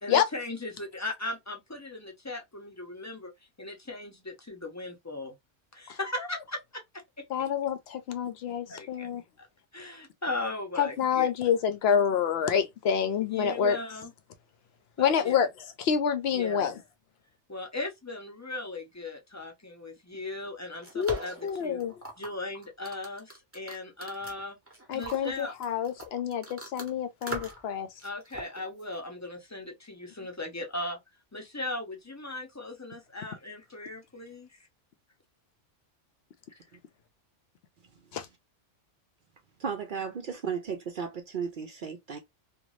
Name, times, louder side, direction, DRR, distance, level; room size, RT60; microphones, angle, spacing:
voice 1, 0.0-3.3 3.6-5.3 5.7-6.8 8.7-9.1 9.4-9.5 9.7-11.3 13.2-14.1 15.0-15.5 16.3-16.7 17.5-21.8 22.2-24.6 24.9-25.5 28.0-31.0 31.3-34.5, left 2 dB, 20° left, 0.5 m, -38 dB
voice 2, 7.3-9.2 10.8-13.8 15.0-15.5 15.8-16.8 20.9-21.9 24.9-27.9 38.1-38.3, left 8 dB, 65° left, 0.7 m, -27 dB
sound 1, 20.4-26.9 27.2-27.7 28.0-29.0, right 2 dB, 15° right, 0.7 m, -41 dB
voice 3, 39.6-42.2, right 6 dB, 60° right, 0.5 m, -34 dB
2.6 x 2.3 x 3.1 m
omnidirectional pair, 1.3 m